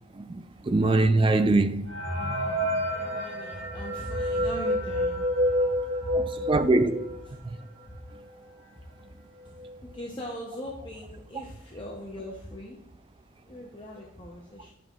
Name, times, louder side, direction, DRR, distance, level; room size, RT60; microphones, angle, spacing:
voice 1, 0.1-1.9 2.6-2.7 6.1-7.1, right 2 dB, 25° right, 0.3 m, -23 dB
sound 1, 1.9-7.3 7.8-7.9 8.1-8.2 8.9-9.0 9.4-9.7, equal, 80° right, 2.8 m, -29 dB
voice 2, 2.8-6.4 7.4-7.5 7.9-8.1 8.7-8.9 9.4-12.8 13.5-14.7, equal, 25° left, 0.7 m, -40 dB
9.4 x 5.4 x 2.4 m
head